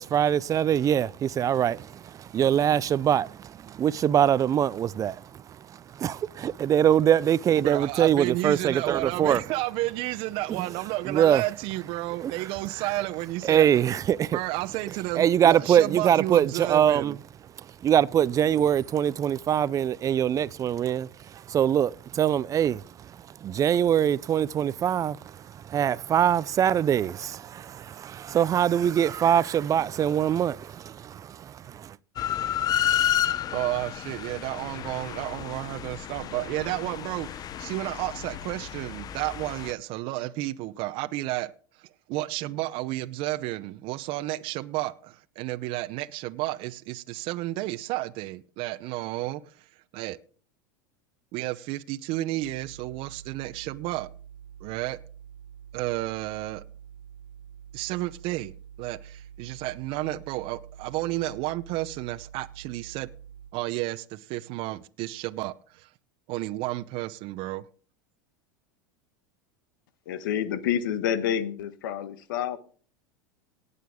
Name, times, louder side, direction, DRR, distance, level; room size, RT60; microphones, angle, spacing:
voice 1, 0.0-5.4 5.7-9.4 10.5-10.6 11.1-11.4 12.2-12.3 13.4-14.4 15.2-17.2 17.8-23.1 23.4-32.0, right 9 dB, 30° right, 0.5 m, -23 dB
voice 2, 7.6-13.7 14.3-17.2 33.5-41.5 41.8-49.7 49.9-50.2 51.3-54.1 54.6-55.0 55.7-56.6 57.7-63.1 63.5-65.9 66.3-67.7, right 17 dB, 55° right, 0.8 m, -32 dB
sound 1, 32.2-39.7, left 11 dB, 35° left, 0.8 m, -31 dB
sound 2, 52.4-63.5, right 8 dB, 75° right, 1.2 m, -47 dB
voice 3, 70.1-72.6, left 9 dB, 75° left, 1.4 m, -28 dB
18.5 x 6.8 x 3.7 m
hypercardioid pair, 100°, 11 cm